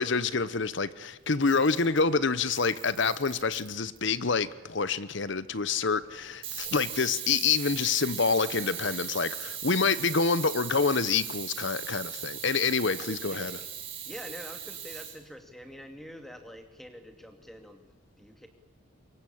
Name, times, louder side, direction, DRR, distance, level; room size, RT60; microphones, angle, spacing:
voice 1, 0.0-13.5, left 4 dB, 60° left, 0.9 m, -27 dB
Camera, 1.3-2.1 2.5-4.0 6.4-15.2, right 9 dB, 25° right, 5.2 m, -38 dB
voice 2, 13.0-13.7 14.0-18.5, equal, ahead, 2.4 m, -46 dB
24.0 x 22.5 x 8.7 m
head